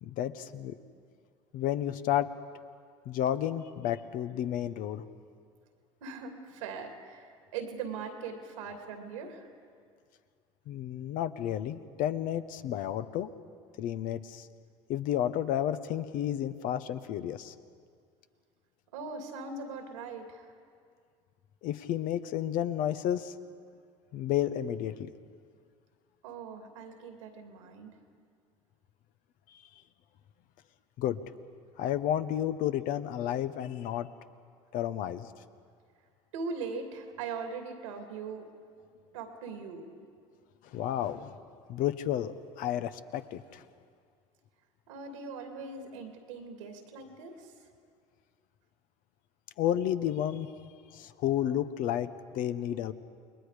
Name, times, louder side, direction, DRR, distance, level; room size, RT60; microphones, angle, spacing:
voice 1, 0.0-0.7 1.5-2.3 3.1-5.0 10.7-13.3 13.8-14.5 14.9-17.5 21.6-23.3 24.1-24.9 29.5-29.6 31.0-31.2 31.8-34.1 34.7-35.3 40.7-41.3 41.7-43.6 49.6-50.5 50.9-52.1 52.3-52.9, left 11 dB, 65° left, 11 dB, 1.0 m, -31 dB
voice 2, 6.0-9.5 18.9-20.5 26.2-28.0 36.3-38.5 39.1-39.9 44.9-47.5, right 5 dB, 85° right, 4 dB, 2.7 m, -40 dB
29.0 x 20.5 x 5.1 m, 2.1 s
hypercardioid pair, 75°, 16 cm